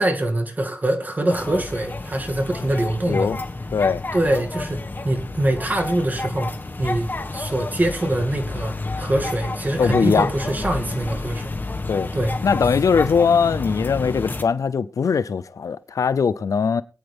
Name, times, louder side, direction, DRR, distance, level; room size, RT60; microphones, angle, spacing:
voice 1, 0.0-3.3 4.1-6.5 6.8-11.5 12.1-12.3, right 1 dB, 30° right, 2.2 m, -24 dB
sound 1, 1.3-14.4, left 2 dB, 35° left, 1.5 m, -30 dB
voice 2, 3.1-3.4 3.7-4.0 9.8-10.3 11.9-12.1 12.4-16.8, left 6 dB, 75° left, 0.5 m, -20 dB
22.0 x 8.9 x 3.4 m
wide cardioid pair, 80°, 6 cm